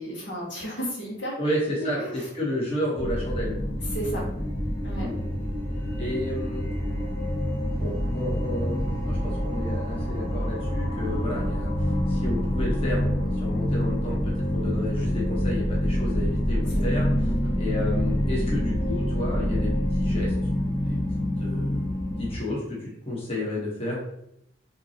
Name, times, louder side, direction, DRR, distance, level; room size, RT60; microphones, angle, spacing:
voice 1, 0.0-1.4 1.8-2.2 3.9-4.3 4.8-5.1 16.9-17.5, right 1 dB, 75° left, -4 dB, 1.5 m, -33 dB
voice 2, 1.4-3.6 5.0-5.1 6.0-6.8 7.7-8.8 9.0-17.1 17.6-19.7 20.0-20.3 20.8-21.9 22.2-24.0, left 1 dB, 30° left, -5 dB, 1.2 m, -31 dB
sound 1, 3.0-22.3, equal, 50° left, 1.8 m, -26 dB
5.9 x 2.9 x 2.9 m, 0.78 s
head